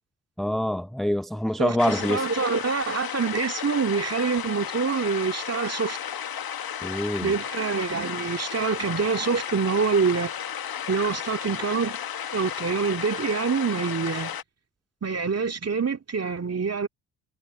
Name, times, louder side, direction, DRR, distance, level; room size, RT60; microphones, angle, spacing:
voice 1, 0.4-2.3 6.8-7.3, left 1 dB, ahead, 0.9 m, -25 dB
voice 2, 1.6-6.0 7.2-10.3 10.9-12.0 12.3-14.3 15.0-16.9, right 5 dB, 30° right, 2.4 m, -26 dB
sound 1, 1.8-14.4, left 9 dB, 50° left, 1.8 m, -33 dB
hypercardioid pair, 45°, 47 cm